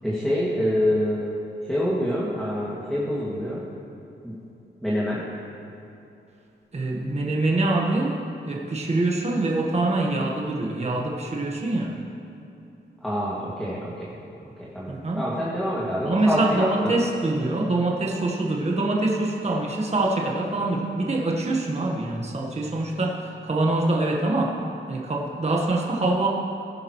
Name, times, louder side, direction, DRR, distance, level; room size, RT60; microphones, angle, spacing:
voice 1, 0.0-1.4 1.7-3.6 4.2-4.3 4.8-5.3 13.0-14.2 14.6-17.0, equal, ahead, -8 dB, 2.1 m, -26 dB
voice 2, 6.7-8.2 8.4-12.0 14.9-15.2 16.0-24.6 24.9-26.3, right 2 dB, 35° right, -1 dB, 1.3 m, -24 dB
17.0 x 10.5 x 3.1 m, 2.8 s
cardioid pair, 85°, 20 cm